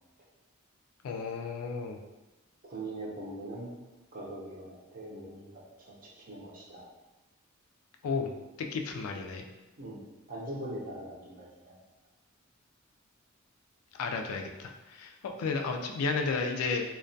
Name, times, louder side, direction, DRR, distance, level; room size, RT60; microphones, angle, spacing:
voice 1, 1.0-2.0 8.0-8.3 8.7-9.4 14.0-16.8, left 4 dB, 85° left, 3 dB, 0.3 m, -33 dB
voice 2, 2.7-3.7 4.1-5.5 5.9-6.0 6.3-6.8 9.8-10.0 10.3-11.7, right 1 dB, 45° right, -4 dB, 0.6 m, -41 dB
2.2 x 2.2 x 2.5 m, 1.1 s
head